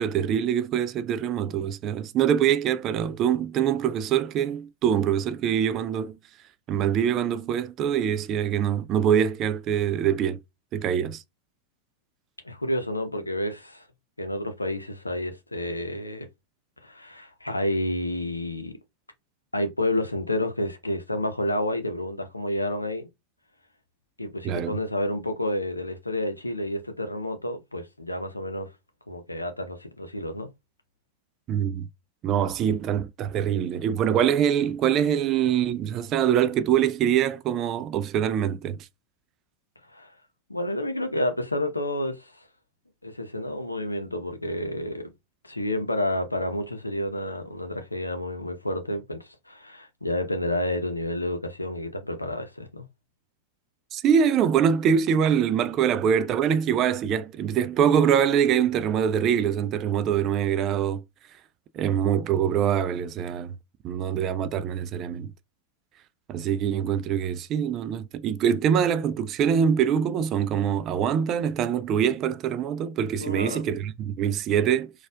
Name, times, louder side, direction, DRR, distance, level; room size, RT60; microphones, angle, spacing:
voice 1, 0.0-6.1 6.7-10.4 10.7-11.2 24.4-24.8 31.5-31.9 32.2-38.8 53.9-61.0 61.7-63.5 63.8-65.3 66.3-74.9, right 8 dB, 35° right, 0.3 m, -24 dB
voice 2, 12.4-13.8 14.2-16.3 16.8-18.7 19.5-23.1 24.2-28.7 29.1-30.5 39.9-40.1 40.5-42.3 43.0-45.1 45.5-49.2 49.5-52.8 73.2-73.6, left 1 dB, 85° left, 0.6 m, -30 dB
4.2 x 2.3 x 2.2 m
figure-of-eight pair, 90°, 0 cm